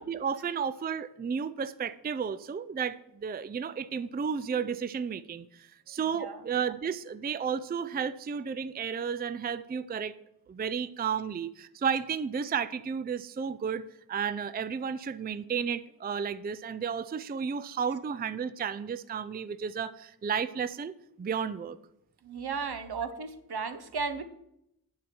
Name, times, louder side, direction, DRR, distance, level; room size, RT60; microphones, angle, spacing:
voice 1, 0.0-10.2 10.5-20.9 21.2-21.8, right 6 dB, 25° right, 14 dB, 0.4 m, -33 dB
voice 2, 6.0-6.4 22.2-24.2, right 5 dB, 75° right, 9 dB, 0.9 m, -35 dB
9.4 x 7.4 x 4.4 m, 0.79 s
wide cardioid pair, 80°, 39 cm